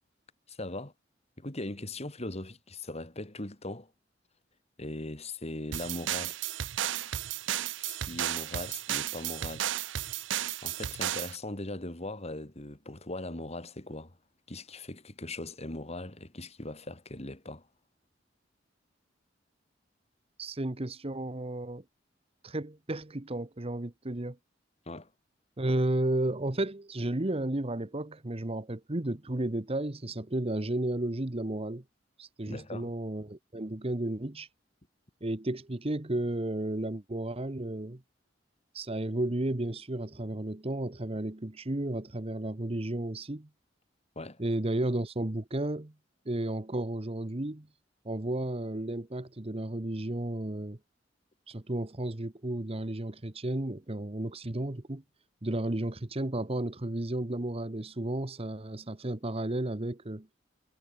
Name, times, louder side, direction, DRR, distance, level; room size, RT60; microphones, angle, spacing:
voice 1, 0.5-0.9 1.4-3.9 4.8-6.4 7.8-9.7 10.6-14.2 14.5-17.7 24.9-25.1 32.5-32.9 44.2-44.4, left 2 dB, 35° left, 2.8 m, -39 dB
sound 1, 5.7-11.4, right 12 dB, 75° right, 0.5 m, -33 dB
voice 2, 20.4-21.8 22.4-24.4 25.6-31.8 32.2-34.5 35.2-38.0 38.7-43.5 44.4-45.9 46.2-47.7 48.0-50.8 51.5-55.0 55.4-60.3, right 1 dB, 30° right, 1.2 m, -33 dB
head